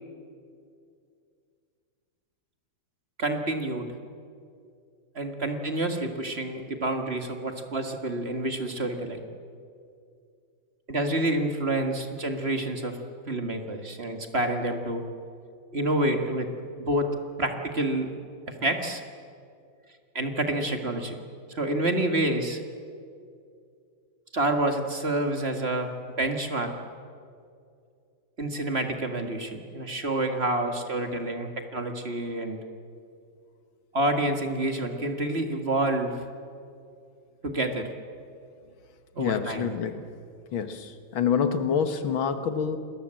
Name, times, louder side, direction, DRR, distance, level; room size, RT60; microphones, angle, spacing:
voice 1, 3.2-3.9 5.2-9.2 10.9-13.0 13.3-15.0 15.7-16.5 16.8-17.1 17.4-18.1 18.5-19.0 20.1-21.2 21.5-22.6 24.3-26.7 28.4-32.6 33.9-36.2 37.4-37.9 39.2-39.7, right 1 dB, 30° right, 5 dB, 2.0 m, -28 dB
voice 2, 39.2-40.0 40.5-42.8, left 7 dB, 85° left, 9 dB, 2.2 m, -27 dB
28.5 x 21.0 x 7.7 m, 2.4 s
omnidirectional pair, 2.2 m